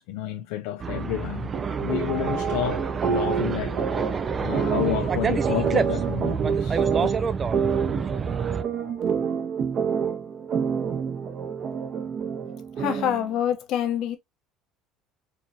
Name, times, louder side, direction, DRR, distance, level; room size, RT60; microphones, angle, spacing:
voice 1, 0.0-1.5 1.8-7.1, left 13 dB, 85° left, 0.4 m, -31 dB
sound 1, 0.8-8.6, right 5 dB, 30° right, 0.4 m, -28 dB
sound 2, 1.5-13.3, right 6 dB, 45° right, 0.9 m, -28 dB
voice 2, 12.8-14.2, left 10 dB, 60° left, 1.0 m, -25 dB
4.5 x 2.5 x 2.8 m
cardioid pair, 115°, 0 cm